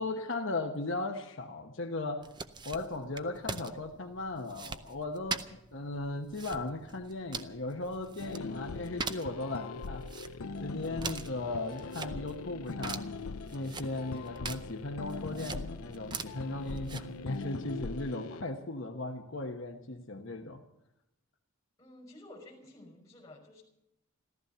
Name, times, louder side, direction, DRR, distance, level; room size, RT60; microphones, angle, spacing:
voice 1, 0.0-2.3 2.6-10.1 10.6-13.1 13.5-20.6, left 2 dB, 60° left, 4 dB, 1.1 m, -37 dB
sound 1, 2.2-17.4, right 4 dB, 20° right, 0.5 m, -44 dB
sound 2, 8.2-18.4, left 4 dB, 85° left, 0.6 m, -41 dB
voice 2, 21.8-23.6, left 1 dB, 15° left, 0 dB, 5.4 m, -52 dB
14.5 x 14.0 x 6.8 m, 0.85 s
head